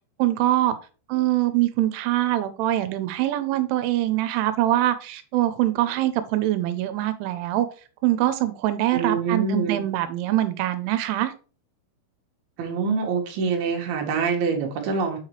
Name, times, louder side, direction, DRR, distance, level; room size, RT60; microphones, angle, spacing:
voice 1, 0.2-0.8 1.1-7.7 8.0-11.3, right 14 dB, 85° right, 11 dB, 3.1 m, -23 dB
voice 2, 8.9-9.8 12.6-15.2, right 5 dB, 65° right, 2 dB, 2.9 m, -25 dB
7.9 x 5.7 x 3.2 m, 0.37 s
omnidirectional pair, 5.5 m